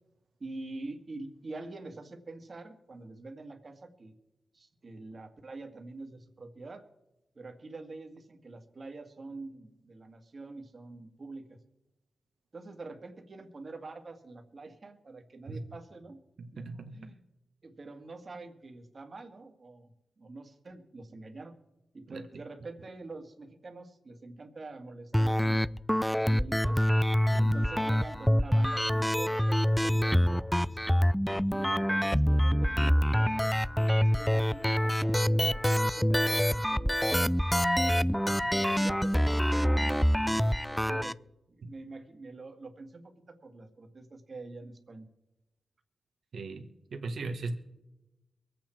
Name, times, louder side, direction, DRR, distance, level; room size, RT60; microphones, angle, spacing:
voice 1, 0.4-4.1 4.5-6.8 7.4-11.6 12.5-16.2 16.5-17.2 17.6-19.9 20.2-21.6 21.9-25.8 26.1-26.8 27.4-31.0 31.5-33.5 33.9-37.3 38.7-41.2 41.5-45.1, right 3 dB, 50° right, 2.0 m, -46 dB
voice 2, 16.4-17.1 22.1-22.2 27.3-27.6 41.6-41.7 46.3-47.5, right 3 dB, 75° right, 1.6 m, -38 dB
sound 1, 25.1-41.1, equal, 5° left, 0.4 m, -26 dB
23.5 x 8.6 x 4.5 m
cardioid pair, 75°, 0 cm